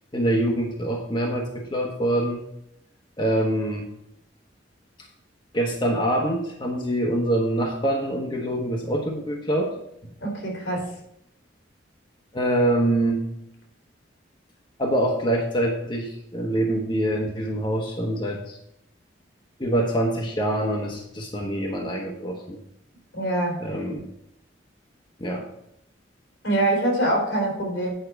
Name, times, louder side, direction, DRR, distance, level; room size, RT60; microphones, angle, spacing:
voice 1, 0.1-2.4 3.2-3.9 5.5-9.7 12.3-13.2 14.8-18.6 19.6-22.6 23.6-24.0 25.2-25.4, right 1 dB, 25° left, 0 dB, 1.0 m, -25 dB
voice 2, 10.2-10.9 23.1-23.6 26.4-27.9, right 1 dB, 85° left, -1 dB, 3.5 m, -24 dB
8.9 x 5.7 x 4.6 m, 0.78 s
head